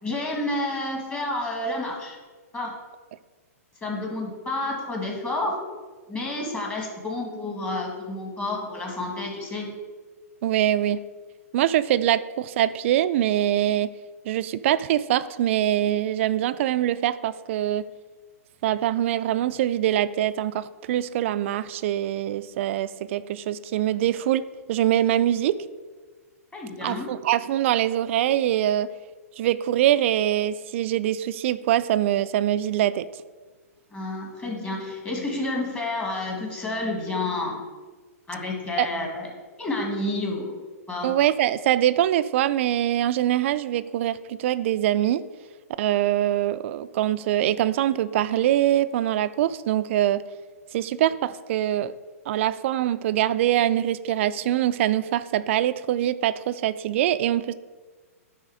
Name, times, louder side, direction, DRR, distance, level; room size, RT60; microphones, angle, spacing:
voice 1, 0.0-2.2 2.5-2.8 3.8-5.6 6.1-9.8 26.5-27.1 33.9-37.6 38.3-39.3 39.6-40.6 40.9-41.1, left 2 dB, 15° left, -1 dB, 1.8 m, -30 dB
voice 2, 10.4-11.0 11.5-13.9 14.3-17.9 18.6-25.6 26.8-28.9 29.4-33.1 38.8-38.9 41.0-45.3 45.8-50.2 50.7-51.9 52.3-57.5, right 12 dB, 55° right, 14 dB, 0.4 m, -23 dB
9.3 x 3.5 x 4.8 m, 1.4 s
hypercardioid pair, 120°, 8 cm